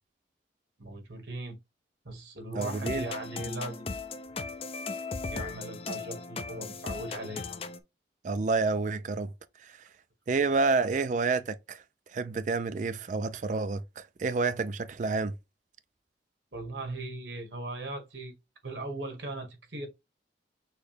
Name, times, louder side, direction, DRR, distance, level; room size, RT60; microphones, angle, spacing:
voice 1, 0.8-1.6 2.0-3.9 5.3-7.6 16.5-18.3 18.6-19.9, right 2 dB, 75° right, 1.5 m, -38 dB
voice 2, 2.5-3.0 8.2-9.3 10.3-11.8 12.1-15.3, right 4 dB, 40° right, 0.3 m, -29 dB
sound 1, 2.6-7.8, left 4 dB, 30° left, 0.4 m, -37 dB
6.4 x 2.2 x 3.2 m
head